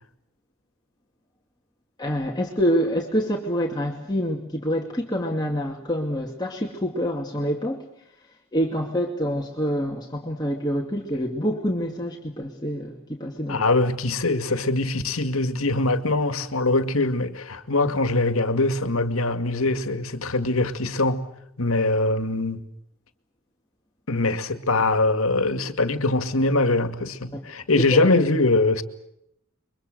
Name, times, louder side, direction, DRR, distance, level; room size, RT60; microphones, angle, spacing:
voice 1, 2.0-7.9 8.5-13.6 27.3-27.5 27.8-28.2, equal, 20° left, 2.4 m, -26 dB
voice 2, 13.5-21.3 21.6-22.6 24.1-28.8, left 2 dB, 80° left, 2.2 m, -22 dB
29.5 x 23.5 x 6.7 m
head